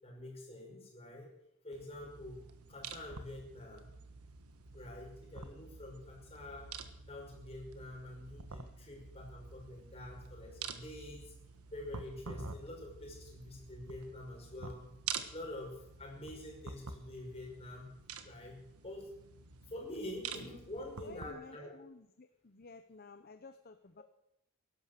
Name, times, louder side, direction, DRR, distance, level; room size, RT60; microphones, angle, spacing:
voice 1, 0.0-1.3 1.6-3.9 4.7-6.7 7.1-11.3 11.7-14.9 15.3-17.9 18.2-19.1 19.7-21.7, left 1 dB, 25° left, -1 dB, 5.6 m, -47 dB
sound 1, 1.7-21.3, right 5 dB, 90° right, 1.4 m, -48 dB
voice 2, 21.0-24.0, left 3 dB, 45° left, 10 dB, 0.8 m, -54 dB
17.0 x 12.0 x 6.7 m, 0.79 s
head